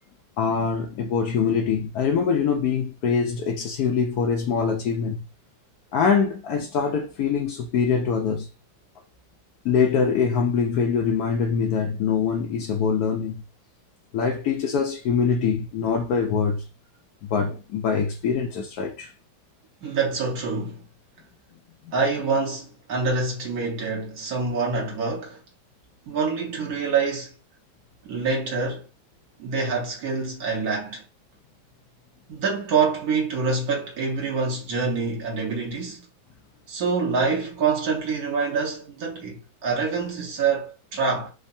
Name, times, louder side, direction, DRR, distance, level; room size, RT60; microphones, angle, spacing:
voice 1, 0.4-5.2 5.9-8.5 9.6-13.4 14.1-16.6 17.2-19.1, left 6 dB, 80° left, 0.8 m, -23 dB
voice 2, 19.8-20.8 21.9-25.4 26.1-27.3 28.0-28.9 29.4-31.0 32.3-36.0 36.7-41.3, right 4 dB, 55° right, 1.2 m, -26 dB
3.5 x 2.1 x 2.5 m
omnidirectional pair, 2.1 m